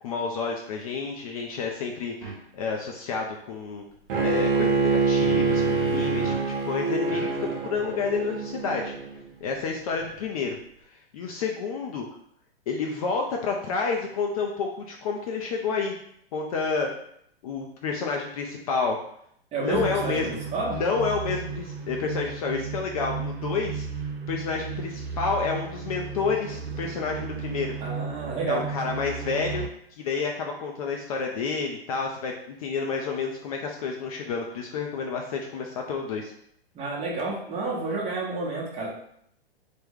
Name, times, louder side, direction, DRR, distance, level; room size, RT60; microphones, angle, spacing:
voice 1, 0.0-2.3 2.5-3.8 4.2-6.4 6.6-8.9 9.4-12.1 12.7-15.9 16.3-16.9 17.4-19.0 19.6-20.4 20.7-27.8 28.5-29.7 29.9-36.3, left 5 dB, 35° left, 1 dB, 0.4 m, -29 dB
sound 1, 2.2-2.4 4.8-6.5 7.1-10.4, right 2 dB, 10° left, 1.2 m, -38 dB
Bowed string instrument, 4.1-9.2, right 4 dB, 55° right, 0.8 m, -25 dB
voice 2, 19.5-20.8 27.8-28.6 36.7-38.9, right 3 dB, 20° right, -3 dB, 0.9 m, -30 dB
sound 2, 19.7-29.7, right 5 dB, 85° right, 0.6 m, -34 dB
3.3 x 2.2 x 3.5 m, 0.70 s
hypercardioid pair, 115°, 31 cm